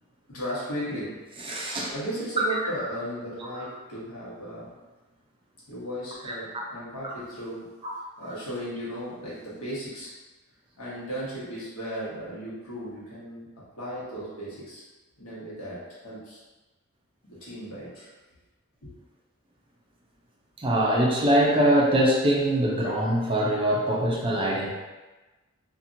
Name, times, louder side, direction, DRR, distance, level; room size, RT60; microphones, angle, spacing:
voice 1, 0.3-1.1 1.9-4.7 5.7-7.7 8.2-10.1 10.8-13.5 13.8-14.8 15.2-16.4 17.2-18.1 18.8-18.9, equal, 75° left, -8 dB, 1.2 m, -36 dB
voice 2, 1.4-1.9 2.5-2.6 6.2-6.6 7.8-7.9 20.6-24.7, right 1 dB, 25° right, -2 dB, 0.4 m, -23 dB
2.8 x 2.5 x 2.5 m, 1.2 s
head